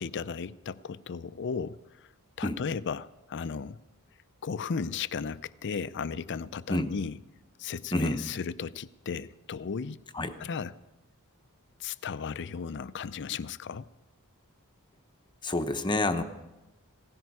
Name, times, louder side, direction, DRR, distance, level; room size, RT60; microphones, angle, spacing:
voice 1, 0.0-2.1 2.4-3.8 4.4-7.2 7.6-10.0 10.4-10.7 11.8-13.9, left 6 dB, 55° left, 15 dB, 0.5 m, -35 dB
voice 2, 7.9-8.2 10.1-10.4 15.4-16.2, left 2 dB, 20° left, 7 dB, 0.8 m, -28 dB
17.0 x 15.0 x 4.8 m, 1.0 s
head